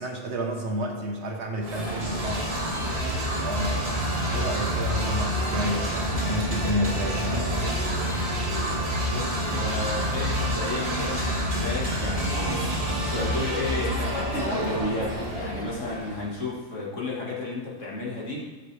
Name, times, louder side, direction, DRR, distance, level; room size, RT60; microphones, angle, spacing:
voice 1, 0.0-2.5 3.4-7.6, equal, 60° right, 2 dB, 1.4 m, -31 dB
sound 1, 1.6-16.3, equal, 30° right, 1.6 m, -28 dB
voice 2, 9.1-18.4, left 2 dB, 70° left, -4 dB, 2.2 m, -33 dB
14.0 x 6.7 x 3.4 m, 1.2 s
omnidirectional pair, 1.3 m